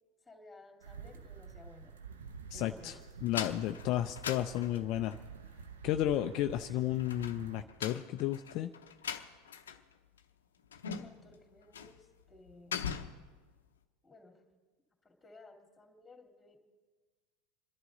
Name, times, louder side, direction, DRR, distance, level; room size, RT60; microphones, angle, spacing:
voice 1, 0.2-3.0 10.9-12.9 14.0-14.4 15.0-16.6, left 2 dB, 15° left, 3 dB, 2.7 m, -57 dB
sound 1, 0.8-7.6, right 6 dB, 85° right, 0.8 m, -49 dB
voice 2, 2.5-5.2 5.8-8.7, left 13 dB, 55° left, 7 dB, 0.5 m, -33 dB
sound 2, 3.3-5.2 7.0-9.9 10.2-10.3 10.7-11.3 11.7-12.0 12.3-13.3, left 7 dB, 85° left, 0.8 m, -41 dB
27.0 x 11.0 x 3.9 m, 1.4 s
hypercardioid pair, 90°, 0 cm